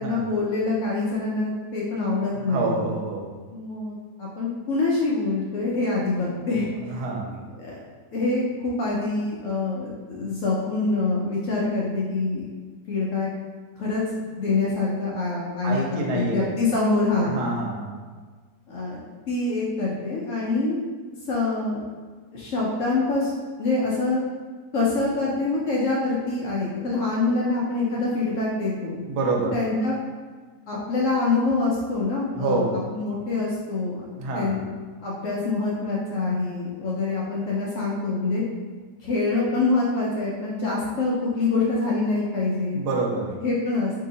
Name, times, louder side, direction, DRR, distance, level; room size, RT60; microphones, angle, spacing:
voice 1, 0.0-2.8 3.5-7.0 7.6-7.8 8.1-12.4 12.9-13.3 13.8-14.0 14.4-17.4 18.7-19.0 19.3-20.8 21.3-21.8 22.3-23.3 23.6-24.2 24.7-29.0 29.5-30.0 30.7-34.0 34.3-34.6 35.0-38.4 39.0-42.8 43.4-44.0, left 3 dB, 65° left, -5 dB, 0.8 m, -25 dB
voice 2, 2.3-3.3 6.5-7.3 15.6-16.5 17.1-17.9 29.1-29.5 32.4-32.8 34.2-34.6 42.7-43.4, right 3 dB, 70° right, -1 dB, 1.1 m, -27 dB
2.8 x 2.8 x 3.8 m, 1.5 s
omnidirectional pair, 1.9 m